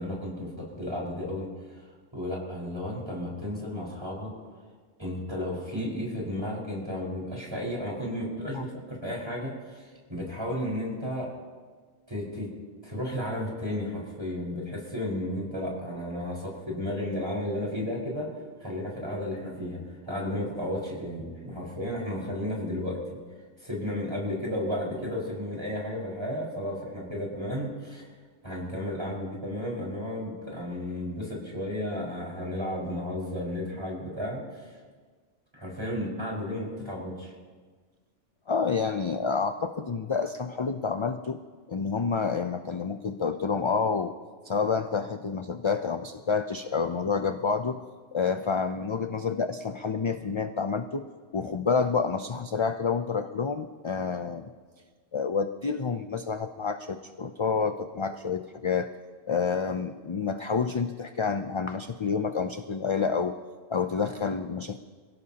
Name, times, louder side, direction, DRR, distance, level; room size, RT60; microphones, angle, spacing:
voice 1, 0.0-1.9 2.1-4.3 5.0-11.3 12.1-12.5 12.8-18.3 18.6-23.0 23.6-28.1 28.4-34.8 35.5-37.3, left 1 dB, 25° right, -4 dB, 4.9 m, -33 dB
voice 2, 38.5-41.4 41.7-44.1 44.4-47.8 48.1-51.0 51.3-54.5 55.1-58.9 59.3-63.4 63.7-64.8, left 5 dB, 40° left, 8 dB, 0.4 m, -28 dB
27.0 x 16.5 x 2.9 m, 1.5 s
omnidirectional pair, 1.2 m